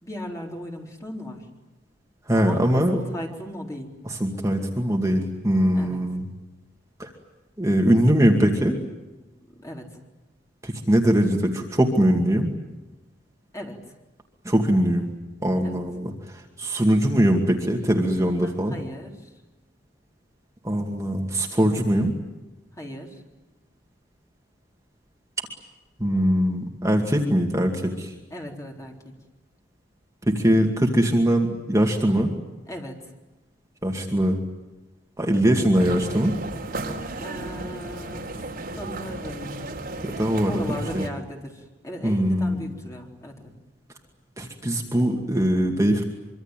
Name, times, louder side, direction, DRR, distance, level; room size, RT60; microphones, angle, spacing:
voice 1, 0.0-1.5 2.3-3.9 5.7-6.0 9.5-10.0 13.5-13.8 15.6-15.8 18.4-19.3 22.8-23.2 28.3-29.1 32.7-33.0 37.2-38.4 38.7-39.6 40.5-43.5, equal, 15° left, 1 dB, 3.9 m, -37 dB
voice 2, 2.3-3.0 4.1-6.3 7.0-7.1 7.6-8.8 10.6-12.5 14.4-15.1 15.4-18.7 20.6-22.1 26.0-28.1 30.3-32.3 33.8-34.4 35.2-36.3 40.0-40.5 40.9-41.0 42.0-42.7 44.4-46.0, equal, 15° right, 1 dB, 2.3 m, -21 dB
sound 1, 35.7-41.1, right 2 dB, 50° right, 3.7 m, -34 dB
25.0 x 25.0 x 9.1 m, 1.1 s
head